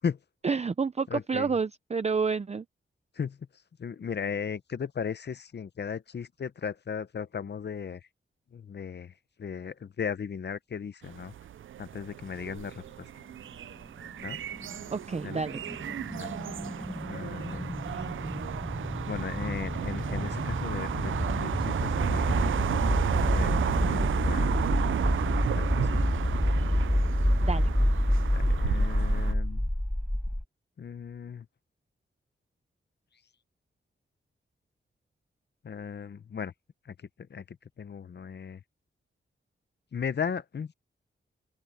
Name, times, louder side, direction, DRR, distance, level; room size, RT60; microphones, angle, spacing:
voice 1, 0.4-2.6 14.9-15.6 27.4-27.7, right 5 dB, 35° right, 0.6 m, -29 dB
voice 2, 1.1-1.5 3.2-3.4 3.8-8.0 8.5-9.1 9.4-11.3 11.8-12.8 14.2-14.4 15.2-15.4 16.1-16.4 16.7-18.1 19.1-24.6 25.0-25.3 25.5-26.1 28.3-29.7 30.8-31.5 35.6-36.5 36.9-37.0 37.3-38.6 39.9-40.7, left 6 dB, 55° left, 0.7 m, -37 dB
sound 1, 11.0-29.3, right 10 dB, 80° right, 0.4 m, -33 dB
sound 2, 14.5-30.4, left 1 dB, 5° left, 1.8 m, -28 dB
open air
wide cardioid pair, 90°, 20 cm